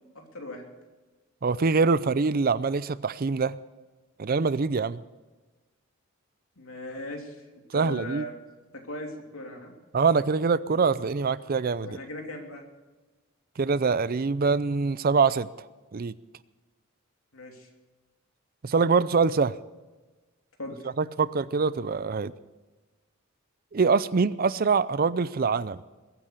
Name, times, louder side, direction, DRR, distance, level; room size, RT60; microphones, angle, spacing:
voice 1, 0.1-0.6 6.6-7.4 7.7-8.4 8.7-9.7 11.8-12.6 17.3-17.7 20.6-20.8, left 1 dB, 80° left, 2 dB, 3.1 m, -38 dB
voice 2, 1.4-3.6 4.2-5.0 7.7-8.2 9.9-12.0 13.6-15.5 15.9-16.1 18.6-19.6 21.0-22.3 23.7-25.8, right 4 dB, 45° right, 17 dB, 0.5 m, -24 dB
22.0 x 9.2 x 6.7 m, 1.2 s
head